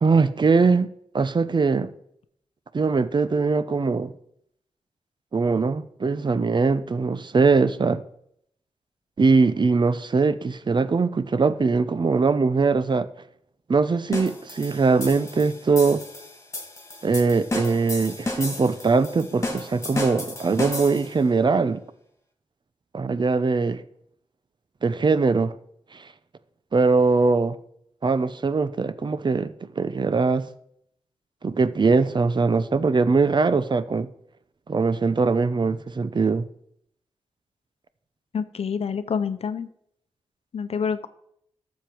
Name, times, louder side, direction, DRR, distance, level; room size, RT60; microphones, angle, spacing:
voice 1, 0.0-1.9 2.7-4.1 5.3-8.0 9.2-13.1 13.7-16.0 17.0-21.8 22.9-23.8 24.8-25.5 25.9-26.0 26.7-27.6 28.0-30.4 31.4-34.1 34.7-36.5, right 4 dB, 45° right, 0.8 m, -21 dB
sound 1, 14.1-21.2, left 2 dB, 25° left, 2.9 m, -33 dB
voice 2, 38.3-39.7 40.5-41.1, left 6 dB, 70° left, 0.8 m, -27 dB
12.5 x 7.4 x 4.6 m
cardioid pair, 65°, 11 cm